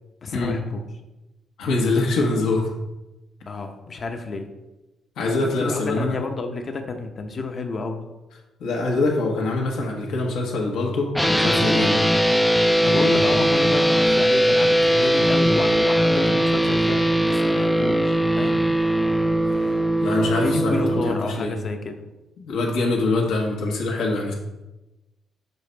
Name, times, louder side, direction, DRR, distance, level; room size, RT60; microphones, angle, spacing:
voice 1, 0.2-0.8 3.5-4.5 5.4-8.0 12.8-18.6 20.0-22.0, left 3 dB, 45° left, 5 dB, 0.8 m, -30 dB
voice 2, 1.6-2.7 5.2-6.2 8.6-12.0 12.9-13.1 19.4-19.7 20.0-21.5 22.4-24.3, left 2 dB, 85° left, -1 dB, 1.4 m, -24 dB
sound 1, 11.1-21.1, right 1 dB, 5° left, 0.4 m, -20 dB
6.9 x 4.0 x 3.4 m, 1.0 s
cardioid pair, 90°, 0 cm